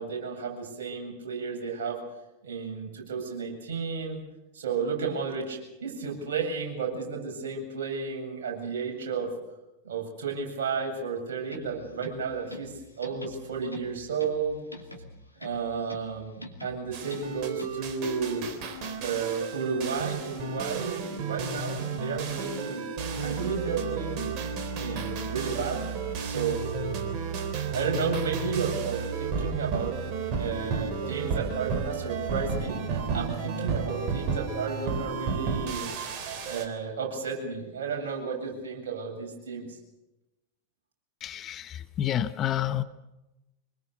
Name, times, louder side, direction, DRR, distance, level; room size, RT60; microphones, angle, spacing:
voice 1, 0.0-2.0 2.4-4.2 4.5-9.3 9.8-12.7 13.0-14.6 15.4-18.5 19.0-22.9 23.2-25.8 26.2-27.1 27.7-29.9 30.3-35.9 36.4-39.8, right 5 dB, 60° right, 0 dB, 8.0 m, -32 dB
sound 1, 11.4-18.0, left 2 dB, 85° left, 2.7 m, -46 dB
sound 2, 16.9-36.7, right 5 dB, 40° right, 3.8 m, -32 dB
voice 2, 41.2-42.8, left 11 dB, 30° left, 12 dB, 1.1 m, -29 dB
25.5 x 21.5 x 6.8 m, 0.99 s
figure-of-eight pair, 90°, 0 cm